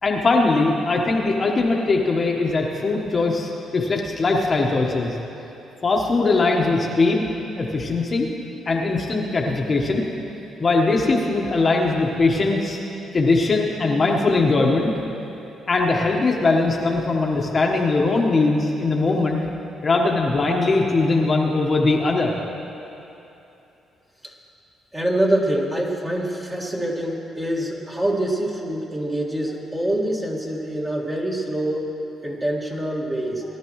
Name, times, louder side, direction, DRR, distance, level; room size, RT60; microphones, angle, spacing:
voice 1, 0.0-5.2 5.8-7.2 7.6-8.3 8.7-10.1 10.6-12.8 13.1-14.9 15.7-19.4 19.8-22.4, left 3 dB, 35° left, -1 dB, 1.2 m, -20 dB
voice 2, 24.9-31.9 32.2-33.4, right 1 dB, 20° right, -2 dB, 1.9 m, -25 dB
19.0 x 11.5 x 3.1 m, 2.9 s
cardioid pair, 90°, 0 cm